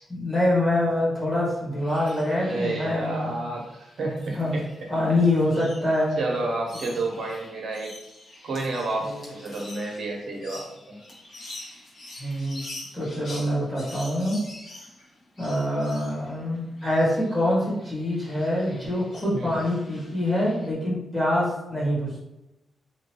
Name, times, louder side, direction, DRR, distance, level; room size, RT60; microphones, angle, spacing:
voice 1, 0.1-3.4 4.3-4.6 4.9-6.2 6.9-7.0 9.0-9.2 12.2-12.6 12.9-14.4 15.4-22.3, left 1 dB, 5° left, -7 dB, 1.3 m, -25 dB
sound 1, 1.8-20.7, left 1 dB, 50° left, 1.2 m, -46 dB
voice 2, 2.4-4.6 6.2-7.9 8.4-11.0 19.3-19.6, right 2 dB, 65° right, 0 dB, 0.8 m, -30 dB
2.9 x 2.6 x 2.9 m, 0.95 s
wide cardioid pair, 120°, 0 cm